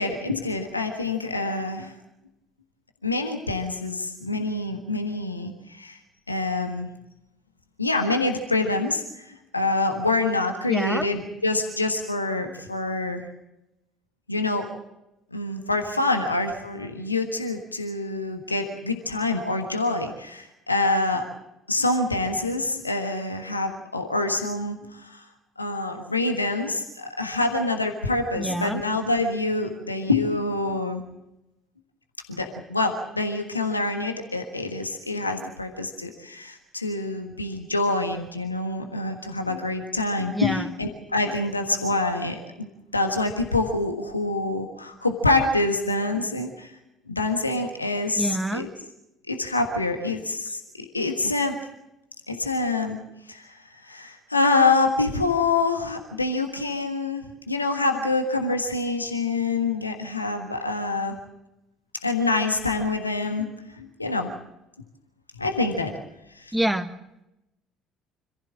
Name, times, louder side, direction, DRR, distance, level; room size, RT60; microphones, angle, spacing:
voice 1, 0.0-2.0 3.0-6.0 6.3-6.9 7.8-9.3 9.5-13.2 14.3-14.7 15.3-21.2 21.7-25.2 25.6-31.0 32.3-42.7 42.9-46.7 47.1-48.7 49.3-51.5 52.3-53.0 53.3-53.6 53.8-61.2 62.0-63.5 63.8-64.3 65.4-65.9 66.4-66.5, left 2 dB, 90° left, 5 dB, 1.5 m, -26 dB
voice 2, 10.7-11.1 28.4-28.8 40.3-40.6 48.2-48.7 66.5-66.9, right 1 dB, 5° right, 6 dB, 1.7 m, -26 dB
26.5 x 15.0 x 7.6 m, 0.89 s
figure-of-eight pair, 55°, 0 cm